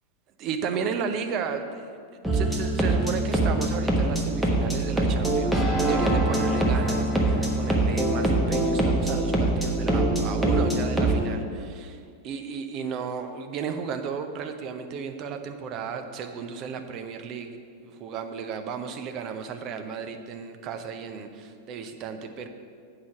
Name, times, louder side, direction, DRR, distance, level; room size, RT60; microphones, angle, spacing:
voice 1, 0.4-1.9 2.3-17.5 17.8-22.5, right 6 dB, 35° right, 7 dB, 0.7 m, -34 dB
sound 1, 2.2-11.2, right 1 dB, 5° right, 1.2 m, -24 dB
8.3 x 4.9 x 7.1 m, 2.2 s
figure-of-eight pair, 90°, 0 cm